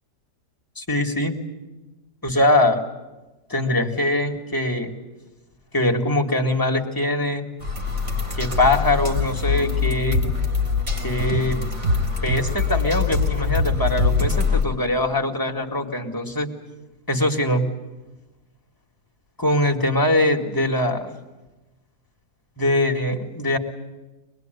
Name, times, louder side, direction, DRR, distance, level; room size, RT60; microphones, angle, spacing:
voice 1, 0.8-1.4 2.2-2.9 3.5-4.9 5.7-7.5 8.3-10.3 11.0-11.6 12.2-16.5 17.1-17.6 19.4-21.1 22.6-23.6, left 1 dB, 15° left, 2 dB, 2.1 m, -22 dB
sound 1, 7.6-14.6, left 4 dB, 40° right, 4.1 m, -23 dB
24.5 x 20.5 x 9.3 m, 1.1 s
omnidirectional pair, 1.7 m